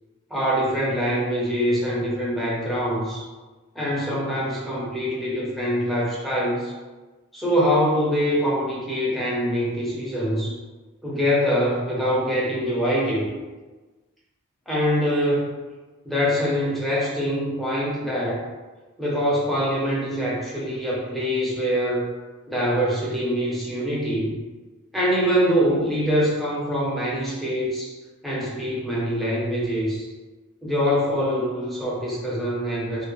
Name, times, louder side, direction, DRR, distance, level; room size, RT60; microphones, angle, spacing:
voice 1, 0.3-3.2 3.7-6.7 7.3-10.6 11.0-13.3 14.7-15.5 16.0-18.5 19.0-22.1 22.5-24.4 24.9-27.9 28.2-30.1 30.6-33.1, equal, ahead, -7 dB, 0.6 m, -24 dB
2.4 x 2.0 x 3.0 m, 1.3 s
head